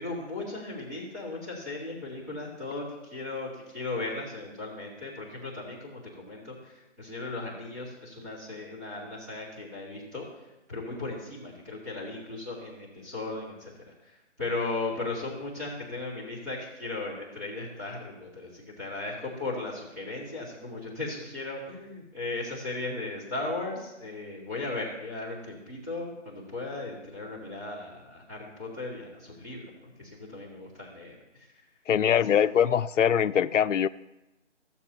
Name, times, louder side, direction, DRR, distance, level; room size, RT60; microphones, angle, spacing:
voice 1, 0.0-10.3 10.7-31.5 32.0-32.7, left 2 dB, 15° right, -9 dB, 2.1 m, -37 dB
voice 2, 31.9-33.9, left 8 dB, 85° left, 14 dB, 0.5 m, -23 dB
15.0 x 7.2 x 2.9 m, 0.98 s
figure-of-eight pair, 175°, 36 cm